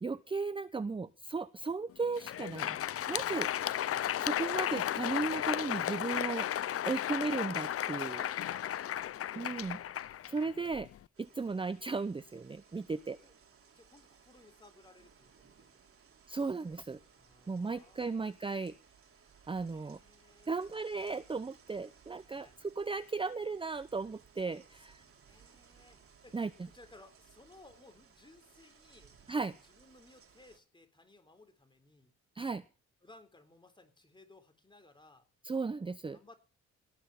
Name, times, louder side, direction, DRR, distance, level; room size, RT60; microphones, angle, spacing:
voice 1, 0.0-2.8 3.1-3.5 4.2-6.5 6.9-8.2 9.3-10.9 11.2-13.2 16.3-17.0 17.5-18.7 19.5-20.0 20.5-22.5 22.8-25.0 26.3-26.5 29.3-29.5 32.4-32.6 35.4-36.2, right 4 dB, 15° right, 15 dB, 0.7 m, -36 dB
Crowd, 2.0-11.0, left 11 dB, 50° left, 0.6 m, -34 dB
voice 2, 7.9-9.1 11.4-11.8 12.9-13.3 13.7-15.8 17.1-18.3 19.7-20.7 22.4-22.6 25.3-26.4 26.7-29.2 29.4-32.1 33.0-35.3 36.1-36.4, left 2 dB, 15° left, 8 dB, 3.8 m, -60 dB
sound 1, 11.1-30.6, right 6 dB, 45° right, 3.8 m, -62 dB
18.0 x 6.2 x 7.1 m, 0.35 s
cardioid pair, 90°, 30 cm